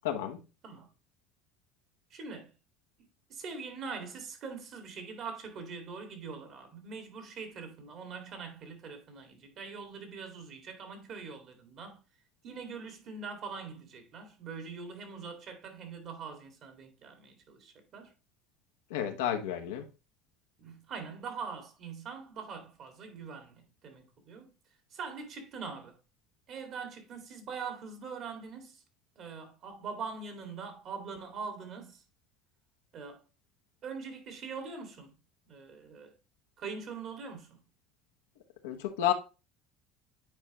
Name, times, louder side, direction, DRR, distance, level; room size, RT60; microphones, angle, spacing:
voice 1, 0.0-0.4 18.9-19.8 38.6-39.1, left 11 dB, 85° left, 1.1 m, -31 dB
voice 2, 2.1-2.5 3.3-12.0 12.4-18.1 20.6-24.5 24.9-26.0 26.5-28.8 29.2-32.0 32.9-33.2 33.8-35.1 35.5-36.1 36.6-37.6, right 5 dB, 55° right, 2.2 m, -43 dB
9.0 x 4.4 x 3.0 m
supercardioid pair, 90°, 0 cm